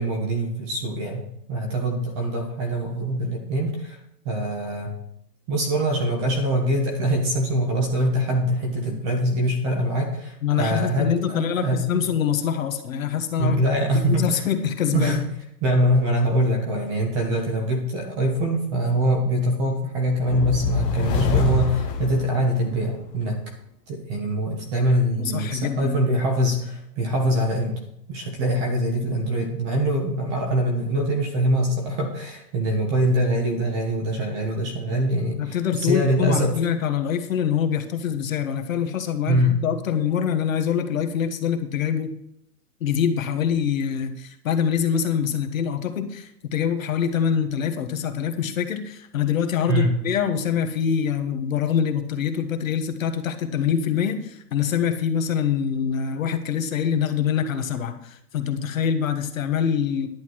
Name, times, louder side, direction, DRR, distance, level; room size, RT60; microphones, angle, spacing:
voice 1, 0.0-4.0 4.2-4.9 5.5-12.0 13.4-14.4 14.9-15.3 15.6-23.4 23.9-27.8 28.1-36.5 39.3-39.6 49.7-49.9, right 1 dB, 15° right, 2 dB, 1.2 m, -23 dB
voice 2, 10.4-13.6 14.1-15.2 25.2-25.9 35.4-42.1 42.8-60.1, left 8 dB, 50° left, 6 dB, 1.5 m, -25 dB
sound 1, 20.1-22.9, left 5 dB, 10° left, 0.9 m, -25 dB
11.0 x 9.4 x 4.7 m, 0.79 s
hypercardioid pair, 175°, 50 cm